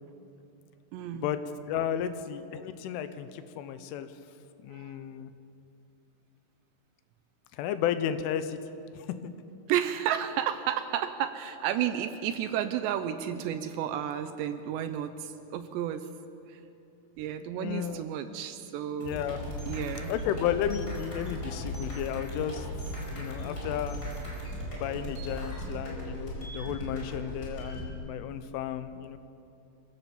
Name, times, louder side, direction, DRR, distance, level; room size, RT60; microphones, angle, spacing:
voice 1, 0.9-1.3 2.0-2.1 4.7-4.9 9.7-16.1 16.5-16.6 17.2-19.2 19.7-20.1, right 10 dB, 80° right, 10 dB, 2.7 m, -32 dB
voice 2, 1.7-4.1 4.6-5.3 7.5-8.6 8.9-9.2 17.6-18.0 19.0-19.4 20.1-22.7 23.1-24.0 24.7-29.2, left 10 dB, 85° left, 11 dB, 3.4 m, -33 dB
sound 1, 19.0-27.9, equal, 20° left, 4.8 m, -37 dB
25.0 x 16.5 x 7.2 m, 2.8 s
omnidirectional pair, 5.5 m